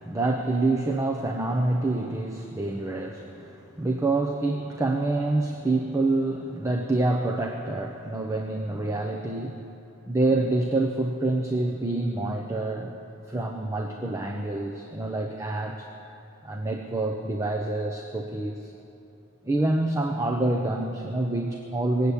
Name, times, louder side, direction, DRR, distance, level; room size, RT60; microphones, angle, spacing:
voice 1, 0.0-9.6 10.1-12.9 13.3-15.9 16.4-18.7 19.4-22.1, right 2 dB, 15° right, 2 dB, 0.7 m, -27 dB
20.0 x 8.2 x 8.5 m, 2.8 s
head